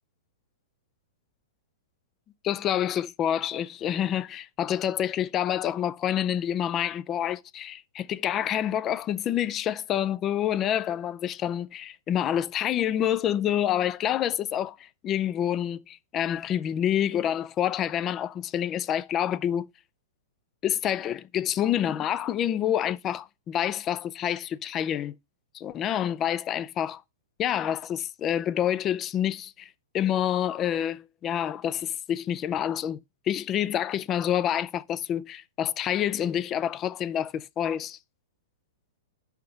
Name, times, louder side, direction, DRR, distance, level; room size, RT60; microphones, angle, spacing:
voice 1, 2.4-19.7 20.6-25.1 25.5-27.0 27.4-38.0, left 10 dB, 25° left, 0.4 m, -28 dB
5.7 x 5.7 x 5.1 m
hypercardioid pair, 150°, 0 cm